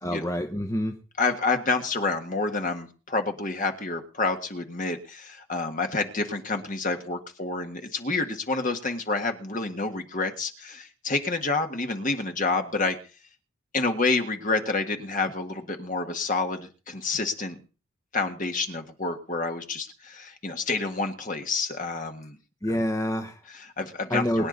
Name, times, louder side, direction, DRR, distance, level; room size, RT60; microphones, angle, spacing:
voice 1, 0.0-1.0 22.6-23.4 24.1-24.5, equal, 15° left, 6 dB, 0.8 m, -27 dB
voice 2, 1.2-13.0 13.7-17.6 18.1-22.4 23.5-24.5, left 3 dB, 35° left, 5 dB, 1.8 m, -28 dB
23.5 x 9.9 x 4.1 m, 0.35 s
head